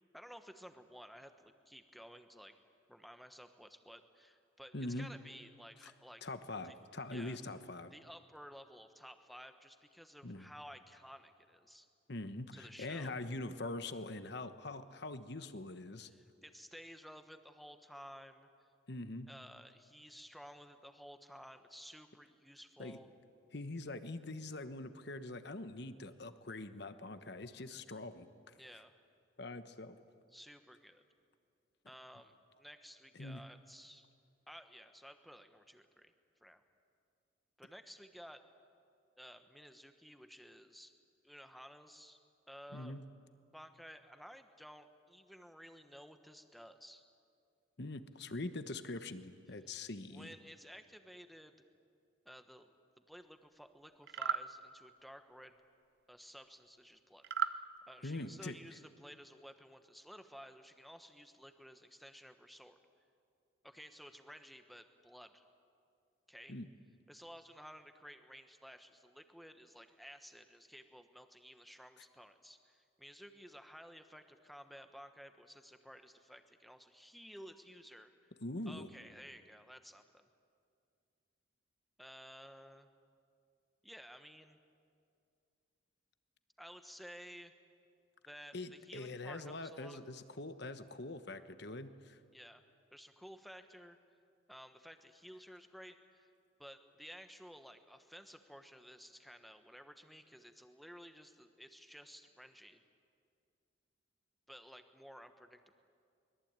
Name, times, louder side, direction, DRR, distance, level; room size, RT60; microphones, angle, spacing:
voice 1, 0.1-2.5 2.9-6.2 6.6-6.8 7.1-7.4 7.9-11.9 12.5-13.1 16.0-18.5 19.3-23.1 28.6-28.9 30.3-31.0 31.8-34.1 34.5-36.1 36.4-36.6 37.6-38.4 39.2-40.9 41.2-42.2 42.5-43.0 43.5-47.0 50.1-51.5 52.2-52.7 53.1-55.5 56.1-62.8 63.6-65.5 66.3-66.6 67.1-78.3 78.7-80.3 82.0-82.9 83.8-84.6 86.6-87.5 88.2-90.0 92.3-92.6 92.9-94.0 94.5-96.3 96.6-102.8 104.5-105.7, equal, ahead, 8 dB, 1.1 m, -54 dB
voice 2, 4.7-5.1 5.8-5.9 6.2-7.9 10.2-10.5 12.1-16.1 18.9-19.3 22.8-23.0 23.5-28.6 29.4-30.0 33.1-33.4 42.7-43.0 47.8-50.3 58.0-58.6 66.5-66.7 78.4-78.9 88.5-92.2, left 2 dB, 55° left, 10 dB, 1.2 m, -43 dB
sound 1, 54.0-54.5 57.2-57.6, right 6 dB, 50° right, 0.6 m, -34 dB
24.0 x 21.5 x 9.0 m, 2.4 s
head